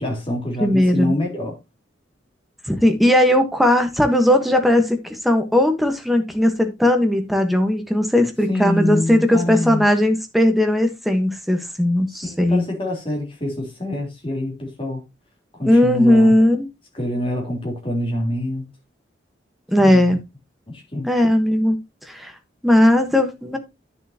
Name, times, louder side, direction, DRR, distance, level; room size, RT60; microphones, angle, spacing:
voice 1, 0.0-1.5 8.5-9.9 12.1-15.0 15.5-16.3 16.9-18.7 19.8-20.1 20.7-21.1, left 1 dB, 30° left, 3.6 m, -26 dB
voice 2, 0.6-1.1 2.7-12.6 15.6-16.7 19.7-20.2 21.0-21.8 22.1-22.3 22.6-23.6, left 1 dB, ahead, 1.2 m, -17 dB
10.5 x 6.9 x 2.9 m
head